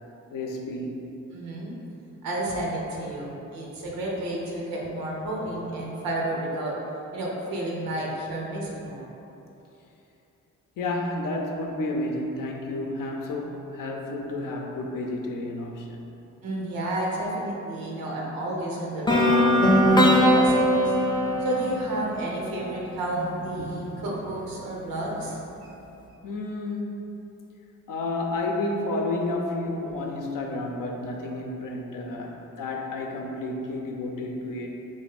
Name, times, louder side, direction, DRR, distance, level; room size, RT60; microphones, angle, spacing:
voice 1, 0.3-1.0 5.5-5.6 7.9-8.0 10.8-16.0 23.6-23.9 26.2-27.1 27.9-34.7, left 2 dB, 70° left, 1 dB, 0.6 m, -31 dB
voice 2, 1.3-1.8 2.2-6.7 7.1-9.1 16.4-21.0 21.4-25.7, right 1 dB, 90° right, -3 dB, 0.7 m, -31 dB
sound 1, 19.1-23.0, equal, 15° left, 0.5 m, -20 dB
3.4 x 2.6 x 4.0 m, 2.9 s
supercardioid pair, 40°, 34 cm